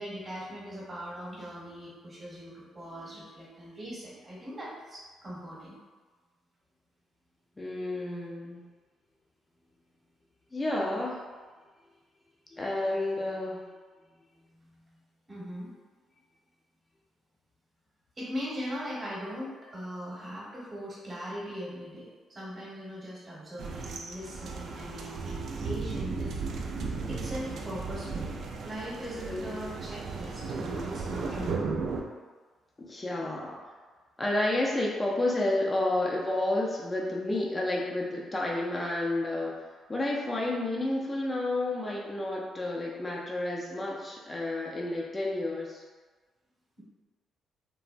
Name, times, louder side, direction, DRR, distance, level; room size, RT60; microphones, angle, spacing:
voice 1, 0.0-5.8 14.5-14.7 15.3-15.7 18.2-26.4 26.7-28.3 28.6-31.6 46.8-46.9, equal, 25° right, -6 dB, 1.0 m, -40 dB
voice 2, 7.6-8.6 10.5-11.3 12.5-13.6 29.2-29.7 32.8-33.6 34.2-45.8, left 2 dB, 20° left, -3 dB, 0.4 m, -31 dB
sound 1, 23.6-32.0, right 4 dB, 65° right, 0.3 m, -35 dB
3.3 x 2.0 x 2.4 m, 1.4 s
cardioid pair, 90°, 0 cm